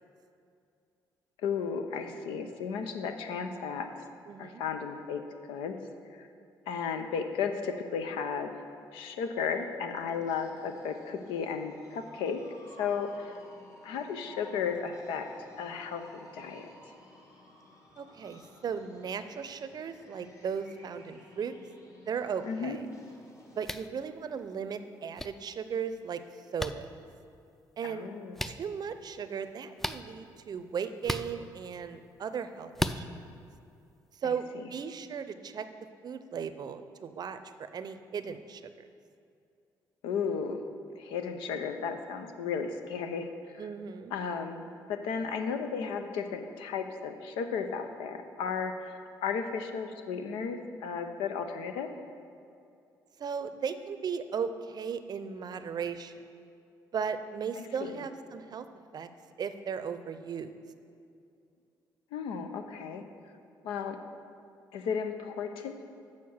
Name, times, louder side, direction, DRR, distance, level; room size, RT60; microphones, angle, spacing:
voice 1, 1.4-3.9 4.4-5.2 5.5-5.8 6.1-6.3 6.7-8.5 8.9-12.4 12.8-13.3 13.8-15.3 15.6-16.0 16.3-16.7 22.4-22.8 27.8-28.5 34.2-34.7 40.0-40.6 41.0-43.3 44.1-51.9 57.6-58.0 62.1-63.0 63.6-64.0 64.7-65.9, left 6 dB, 85° left, 7 dB, 0.6 m, -34 dB
voice 2, 4.3-4.6 10.0-10.3 18.0-21.6 22.1-22.8 23.6-26.2 26.5-26.9 27.8-28.1 28.5-33.2 34.2-35.7 36.0-38.9 43.6-44.1 53.2-56.1 56.9-58.7 58.9-59.1 59.4-60.5, right 6 dB, 50° right, 11 dB, 0.6 m, -36 dB
sound 1, 9.9-23.7, left 1 dB, 40° left, 2.0 m, -55 dB
sound 2, 23.6-23.9 25.2-25.3 26.6-26.7 28.3-28.5 29.8-30.0 31.0-31.3 32.7-33.0, equal, 5° left, 0.4 m, -32 dB
6.5 x 6.4 x 7.1 m, 2.5 s
supercardioid pair, 65°, 9 cm